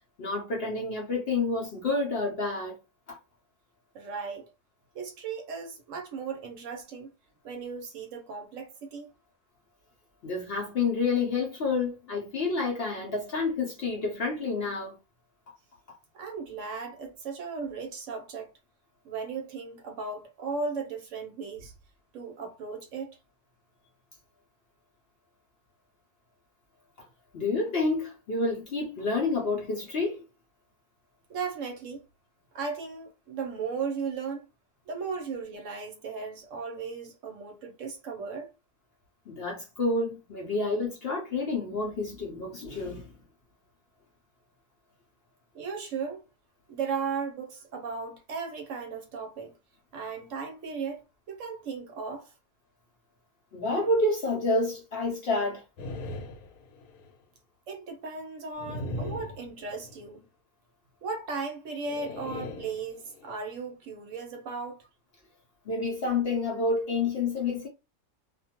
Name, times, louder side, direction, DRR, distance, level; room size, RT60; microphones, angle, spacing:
voice 1, 0.2-2.8 3.1-3.2 10.2-15.0 15.9-16.0 27.0-27.1 27.3-30.2 39.3-43.1 53.5-55.6 65.7-67.7, left 3 dB, 55° left, 0.7 m, -29 dB
voice 2, 3.9-4.5 4.9-7.1 7.4-9.1 16.1-18.5 19.0-21.7 22.1-23.2 31.3-32.0 32.5-34.5 34.9-38.5 45.5-46.2 46.7-49.5 49.9-52.3 57.7-60.3 61.0-64.8, right 5 dB, 65° right, 0.9 m, -36 dB
sound 1, 55.8-57.1 58.6-60.1 61.8-63.4, left 1 dB, 80° left, 1.1 m, -39 dB
2.5 x 2.2 x 2.8 m
omnidirectional pair, 1.5 m